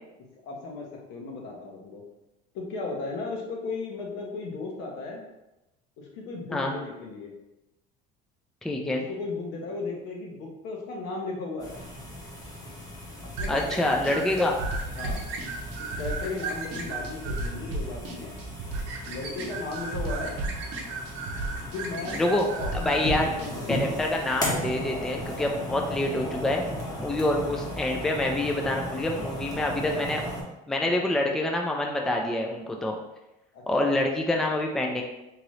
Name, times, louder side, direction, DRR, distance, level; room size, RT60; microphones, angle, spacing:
voice 1, 0.4-2.0 2.5-5.2 6.0-7.3 8.9-11.8 13.4-14.7 14.9-15.2 16.0-18.3 19.0-20.3 21.6-22.2 22.5-23.8 30.8-31.1 33.5-34.0, left 3 dB, 75° left, -1 dB, 0.9 m, -36 dB
voice 2, 8.6-9.0 13.5-14.6 22.1-22.5 22.8-23.3 23.7-26.6 27.0-30.2 30.7-33.0 33.7-35.0, left 1 dB, 5° left, 1 dB, 0.3 m, -26 dB
sound 1, 11.6-30.4, equal, 20° left, 0.8 m, -36 dB
sound 2, 13.4-23.5, right 2 dB, 75° right, 0.7 m, -34 dB
2.9 x 2.5 x 3.1 m, 0.94 s
supercardioid pair, 110°, 19 cm